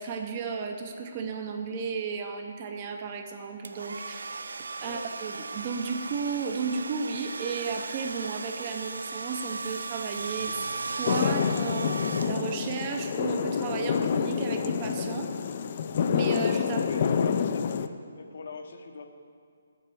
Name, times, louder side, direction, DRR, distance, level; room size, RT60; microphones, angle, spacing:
voice 1, 0.0-15.3 16.1-16.8, right 5 dB, 20° right, 5 dB, 0.5 m, -34 dB
Domestic sounds home sounds, 3.6-12.8, right 3 dB, 85° right, 0.4 m, -37 dB
sound 1, 11.1-17.9, left 7 dB, 30° left, 0.3 m, -27 dB
voice 2, 16.6-19.1, left 4 dB, 50° left, 6 dB, 0.8 m, -42 dB
8.9 x 7.5 x 6.9 m, 2.3 s
hypercardioid pair, 175°, 0 cm